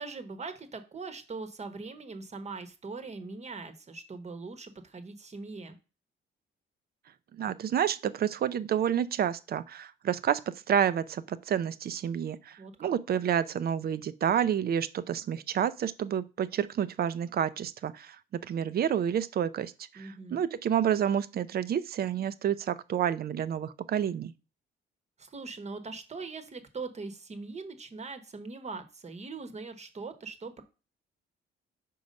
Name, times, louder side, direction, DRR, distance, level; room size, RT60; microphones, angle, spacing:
voice 1, 0.0-5.8 12.6-12.9 19.9-20.4 25.2-30.6, right 4 dB, 35° right, 1.0 m, -41 dB
voice 2, 7.4-24.3, right 9 dB, 50° right, 0.5 m, -29 dB
5.3 x 4.6 x 5.2 m
cardioid pair, 90°, 20 cm